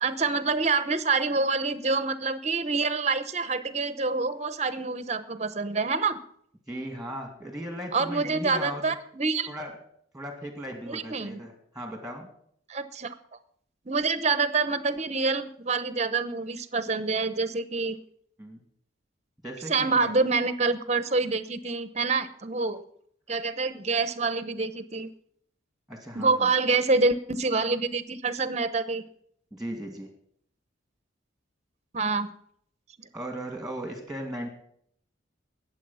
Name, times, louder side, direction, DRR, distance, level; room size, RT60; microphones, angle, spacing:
voice 1, 0.0-6.2 7.9-9.5 10.8-11.4 12.7-13.2 13.9-18.0 19.7-22.8 23.3-25.1 26.1-29.0 31.9-32.3 33.0-33.1, right 4 dB, 35° right, 12 dB, 0.9 m, -26 dB
voice 2, 6.7-8.9 9.5-9.7 10.1-12.3 18.4-18.6 19.4-20.1 25.9-26.5 29.5-30.1 33.1-34.5, right 1 dB, ahead, 3 dB, 2.3 m, -37 dB
20.0 x 7.8 x 5.6 m, 0.66 s
head